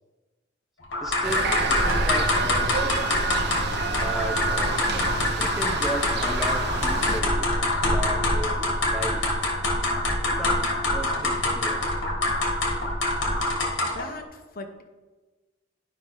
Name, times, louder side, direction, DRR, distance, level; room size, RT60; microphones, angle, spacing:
sound 1, 0.9-14.1, left 1 dB, 80° left, 1.7 m, -25 dB
voice 1, 1.0-3.0 4.0-4.8 5.4-9.4 10.2-11.9, right 1 dB, ahead, 2 dB, 0.8 m, -35 dB
sound 2, 1.2-7.2, right 4 dB, 60° right, 0.7 m, -29 dB
voice 2, 13.8-14.8, left 3 dB, 50° left, 6 dB, 0.9 m, -39 dB
11.0 x 5.5 x 4.7 m, 1.2 s
head